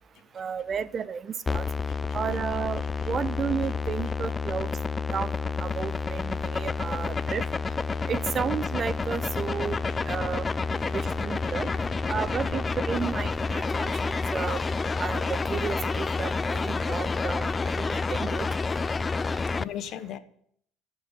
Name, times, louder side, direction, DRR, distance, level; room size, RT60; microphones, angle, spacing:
voice 1, 0.3-1.7 2.1-4.7 5.1-5.3 5.6-7.4 8.1-9.8 10.1-10.5 10.9-11.7 12.1-14.6 15.0-18.5, right 7 dB, 35° right, 17 dB, 0.7 m, -32 dB
sound 1, 1.5-19.6, left 4 dB, 20° left, 0.4 m, -29 dB
voice 2, 9.9-10.2 10.8-11.1 11.4-11.7 19.6-20.2, left 10 dB, 55° left, 11 dB, 1.2 m, -40 dB
13.5 x 6.9 x 8.5 m, 0.66 s
supercardioid pair, 105°, 0 cm